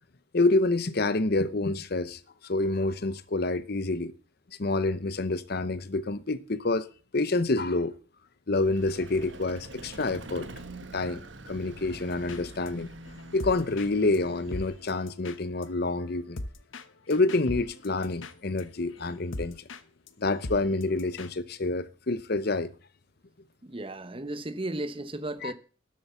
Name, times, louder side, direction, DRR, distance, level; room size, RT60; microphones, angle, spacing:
voice 1, 0.3-4.1 4.6-7.9 8.5-10.5 10.9-12.9 13.3-16.4 17.1-19.6 20.2-22.7 25.4-25.5, left 2 dB, 55° left, 0.8 m, -28 dB
Vehicle, 8.6-15.0, right 2 dB, 70° right, 1.5 m, -46 dB
sound 1, 12.1-12.7 13.0-19.8 20.1-20.2 20.4-21.3, left 2 dB, 80° left, 1.1 m, -41 dB
voice 2, 23.6-25.5, right 1 dB, 25° right, 0.9 m, -35 dB
12.5 x 7.6 x 7.1 m
head